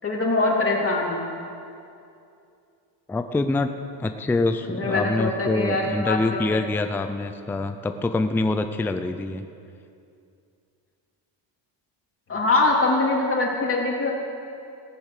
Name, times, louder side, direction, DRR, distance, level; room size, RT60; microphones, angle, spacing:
voice 1, 0.0-1.2 4.7-6.6 12.3-14.1, left 2 dB, 25° left, -2 dB, 3.1 m, -23 dB
voice 2, 3.1-3.7 4.0-9.5, left 2 dB, 5° left, 7 dB, 0.4 m, -25 dB
18.0 x 8.2 x 6.6 m, 2.5 s
cardioid pair, 120°, 48 cm